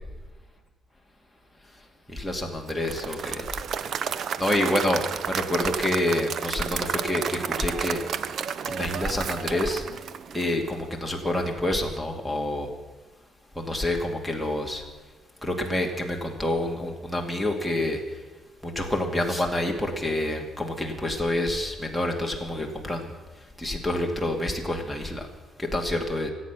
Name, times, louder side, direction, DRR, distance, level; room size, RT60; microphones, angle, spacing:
voice 1, 2.1-3.4 4.4-8.0 8.6-9.8 10.3-12.7 13.6-14.8 15.4-18.0 18.6-23.1 23.6-25.2 25.6-26.3, left 1 dB, ahead, 0 dB, 2.3 m, -27 dB
Applause / Crowd, 2.7-10.9, right 7 dB, 60° right, 0.7 m, -31 dB
24.5 x 8.7 x 6.1 m, 1.2 s
cardioid pair, 90°, 0 cm